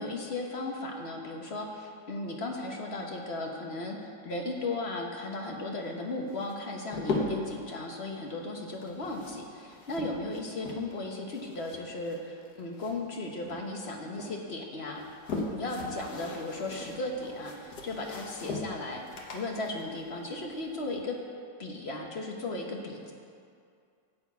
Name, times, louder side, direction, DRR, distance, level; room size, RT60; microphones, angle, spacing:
voice 1, 0.0-15.0 15.5-19.0 19.3-21.2 21.6-23.1, left 2 dB, 40° left, 1 dB, 1.1 m, -36 dB
sound 1, 6.3-7.6 8.7-11.1 11.3-13.2 13.5-14.3 14.9-20.9, left 3 dB, 60° left, 1.6 m, -38 dB
13.0 x 4.4 x 8.2 m, 2.4 s
omnidirectional pair, 2.0 m